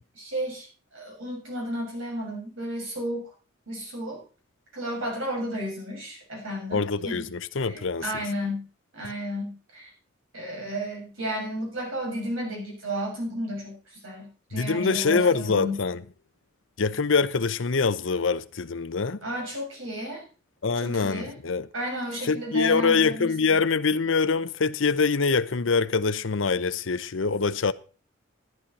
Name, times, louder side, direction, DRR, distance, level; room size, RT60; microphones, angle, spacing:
voice 1, 0.2-0.7 0.9-3.3 3.7-4.2 4.7-7.2 7.6-8.7 8.9-9.9 10.3-15.8 19.2-20.2 20.7-21.4 21.7-23.6, equal, 90° right, 7.1 m, -33 dB
voice 2, 6.7-8.1 14.5-16.0 16.8-19.2 20.6-21.7 22.2-27.7, left 4 dB, 70° left, 0.7 m, -24 dB
14.0 x 10.5 x 4.2 m
head